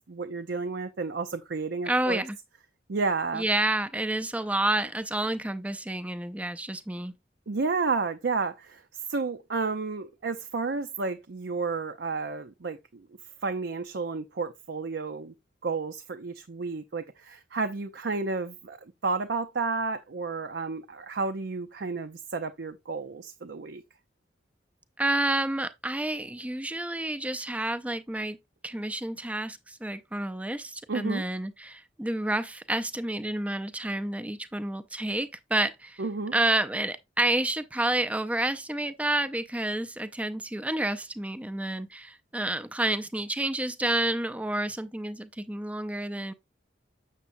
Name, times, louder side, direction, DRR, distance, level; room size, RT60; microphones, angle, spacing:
voice 1, 0.1-2.2 2.9-3.5 7.5-8.8 9.1-13.1 13.4-15.3 15.6-23.8 30.9-31.2 36.0-36.3, right 4 dB, 70° right, 0.6 m, -31 dB
voice 2, 1.9-2.4 3.3-7.1 25.0-28.4 28.6-36.0 36.3-46.3, right 1 dB, 10° right, 0.5 m, -29 dB
7.3 x 6.8 x 2.6 m
head